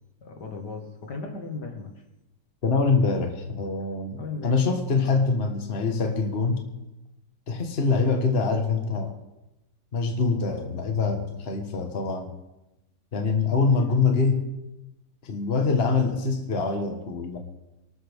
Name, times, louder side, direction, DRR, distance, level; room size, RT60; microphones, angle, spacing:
voice 1, 0.2-2.0 4.2-4.6 5.1-5.2, left 4 dB, 70° left, 3 dB, 2.3 m, -36 dB
voice 2, 2.6-6.6 7.5-9.1 9.9-12.3 13.1-14.4 15.2-17.4, left 4 dB, 35° left, 4 dB, 1.6 m, -24 dB
23.5 x 13.0 x 3.6 m, 0.96 s
omnidirectional pair, 1.9 m